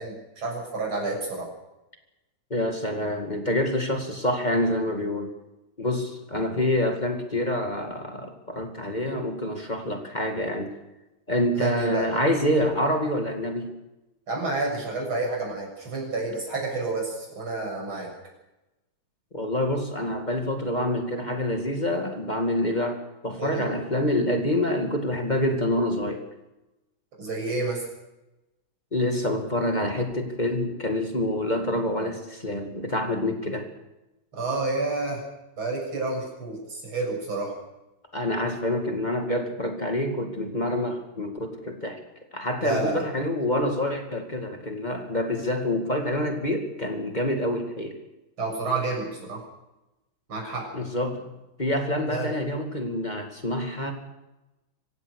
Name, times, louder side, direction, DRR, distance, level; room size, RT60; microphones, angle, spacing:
voice 1, 0.0-1.5 11.5-12.1 14.3-18.1 23.4-23.7 27.2-27.9 34.3-35.2 35.6-37.6 42.6-43.0 48.4-49.4 50.3-50.7 52.1-52.3, right 3 dB, 85° right, -1 dB, 7.8 m, -29 dB
voice 2, 2.5-5.3 5.8-10.7 11.3-13.7 19.3-26.2 28.9-33.7 38.1-42.0 42.3-48.0 50.7-51.3 51.6-53.9, left 1 dB, 20° left, 4 dB, 2.4 m, -27 dB
26.5 x 16.0 x 6.5 m, 0.99 s
omnidirectional pair, 2.2 m